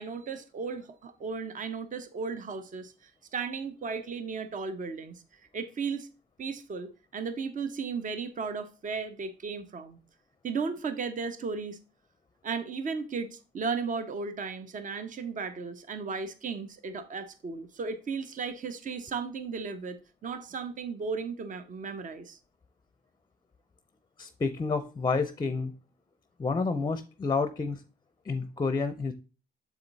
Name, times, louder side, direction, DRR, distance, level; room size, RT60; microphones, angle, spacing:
voice 1, 0.0-2.9 3.3-5.2 5.5-6.1 6.4-10.0 10.4-11.8 12.4-20.0 20.2-22.4, right 5 dB, 40° right, 0.8 m, -35 dB
voice 2, 24.2-25.7 26.4-27.8 28.3-29.1, left 4 dB, 20° left, 0.5 m, -29 dB
7.1 x 4.3 x 3.9 m
cardioid pair, 90°, 20 cm